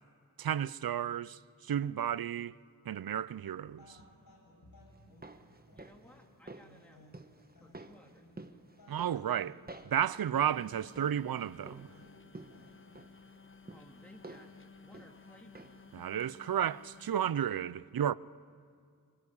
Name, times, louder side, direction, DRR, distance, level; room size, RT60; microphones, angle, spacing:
voice 1, 0.4-1.4 1.7-2.6 2.9-4.0 8.9-9.6 9.9-11.9 15.9-18.1, right 9 dB, 80° right, 0.5 m, -32 dB
sound 1, 3.6-13.1, left 1 dB, 80° left, 6.9 m, -61 dB
sound 2, 4.9-16.0 16.2-16.3, right 2 dB, 25° right, 1.2 m, -53 dB
voice 2, 5.7-7.0 7.6-8.3 13.7-14.5 14.8-15.8, equal, 5° left, 2.7 m, -59 dB
sound 3, 10.3-17.3, left 4 dB, 35° left, 1.0 m, -56 dB
25.0 x 20.5 x 8.4 m
wide cardioid pair, 60°, 35 cm